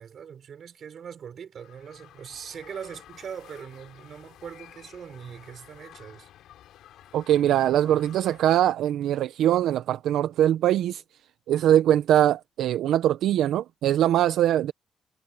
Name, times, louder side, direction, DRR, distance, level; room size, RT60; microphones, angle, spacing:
voice 1, 0.0-6.3, right 7 dB, 55° right, 6.2 m, -41 dB
sound 1, 1.6-8.7, left 12 dB, 80° left, 7.8 m, -51 dB
voice 2, 7.1-11.0 11.5-14.7, right 11 dB, 80° right, 0.8 m, -22 dB
cardioid pair, 90°, 0 cm